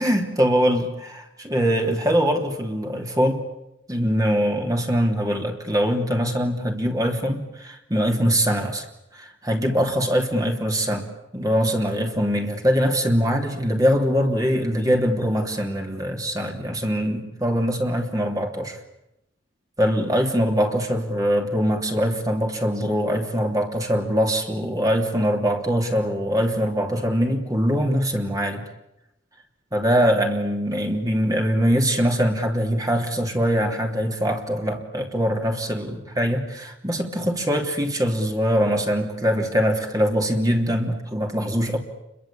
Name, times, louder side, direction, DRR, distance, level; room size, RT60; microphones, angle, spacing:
voice 1, 0.0-3.4 3.9-8.8 9.1-11.1 11.3-18.8 19.8-28.6 29.7-41.8, equal, 20° right, 3 dB, 3.1 m, -22 dB
28.5 x 23.0 x 8.7 m, 0.87 s
head